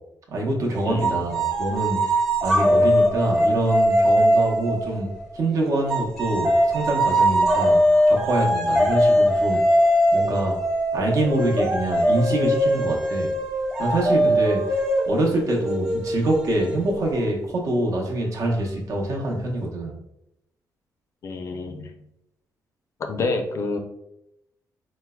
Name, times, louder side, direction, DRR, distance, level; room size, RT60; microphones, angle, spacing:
voice 1, 0.3-5.1 5.3-9.6 10.1-10.6 10.9-13.3 13.8-14.8 15.1-19.9, right 1 dB, 55° right, -1 dB, 0.7 m, -25 dB
voice 2, 0.8-1.3 21.2-22.0 23.0-23.8, left 3 dB, 45° left, 5 dB, 0.4 m, -28 dB
sound 1, 1.0-5.4 5.9-17.2, equal, ahead, 0.6 m, -21 dB
4.4 x 2.0 x 2.3 m, 0.83 s
cardioid pair, 150°, 7 cm